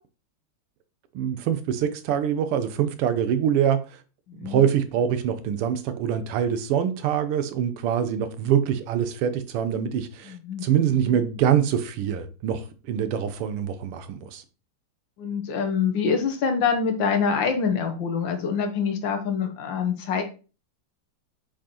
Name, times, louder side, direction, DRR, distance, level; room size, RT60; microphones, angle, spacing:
voice 1, 1.1-3.8 4.3-10.4 10.6-14.4, right 9 dB, 85° right, 1.7 m, -24 dB
voice 2, 4.3-4.6 10.2-10.7 15.2-20.2, left 6 dB, 65° left, 1.5 m, -25 dB
7.4 x 4.6 x 2.9 m
omnidirectional pair, 2.4 m